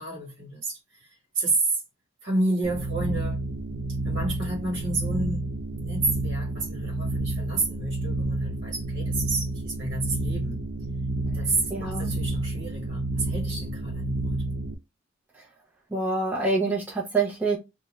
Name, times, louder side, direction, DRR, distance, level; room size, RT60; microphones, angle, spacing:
voice 1, 0.0-1.8 2.2-3.4 4.0-5.4 5.8-10.6 11.3-14.4, right 2 dB, 45° right, 1.3 m, -30 dB
sound 1, 2.6-14.7, right 2 dB, 80° right, 0.4 m, -30 dB
voice 2, 11.7-12.1 15.9-17.6, right 3 dB, 10° right, 0.7 m, -26 dB
2.6 x 2.2 x 3.0 m
head